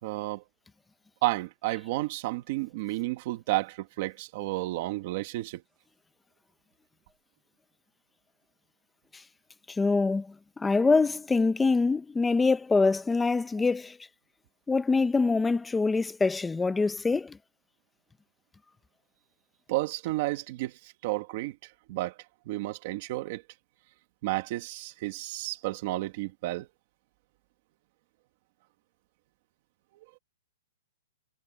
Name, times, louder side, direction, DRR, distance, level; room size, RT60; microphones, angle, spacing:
voice 1, 0.0-0.4 1.2-5.6 19.7-20.7 21.0-21.6 21.9-22.1 22.5-23.4 24.2-26.7, right 18 dB, 30° right, 1.9 m, -31 dB
voice 2, 9.8-10.2 10.6-13.9 14.7-17.3, left 4 dB, 5° left, 0.7 m, -24 dB
hypercardioid pair, 180°, 0 cm